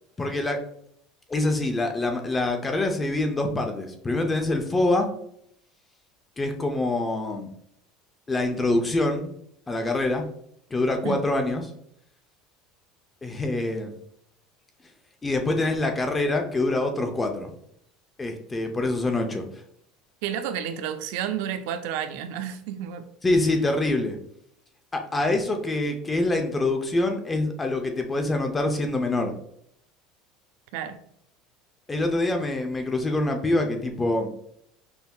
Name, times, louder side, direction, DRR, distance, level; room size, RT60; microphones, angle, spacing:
voice 1, 0.2-0.6 1.3-5.1 6.4-7.5 8.3-9.3 9.7-10.3 10.7-11.6 13.2-13.9 15.2-17.5 18.2-19.4 23.2-24.2 24.9-29.3 31.9-34.3, left 2 dB, 15° left, 4 dB, 0.5 m, -25 dB
voice 2, 20.2-23.0 30.7-31.0, right 9 dB, 75° right, 9 dB, 0.4 m, -31 dB
5.6 x 2.7 x 2.3 m, 0.71 s
cardioid pair, 150°, 0 cm